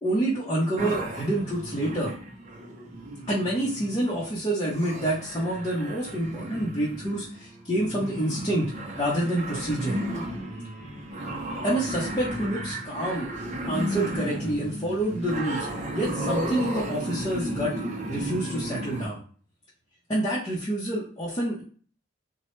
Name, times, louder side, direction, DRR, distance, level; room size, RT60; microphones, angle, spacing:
voice 1, 0.0-2.1 3.3-8.7 9.0-10.0 11.6-13.3 13.7-15.7 15.9-17.7 18.1-19.2 20.1-21.6, right 1 dB, 25° left, -7 dB, 0.8 m, -27 dB
sound 1, 0.8-19.1, right 1 dB, 35° right, 0.6 m, -34 dB
3.0 x 2.2 x 3.1 m, 0.42 s
head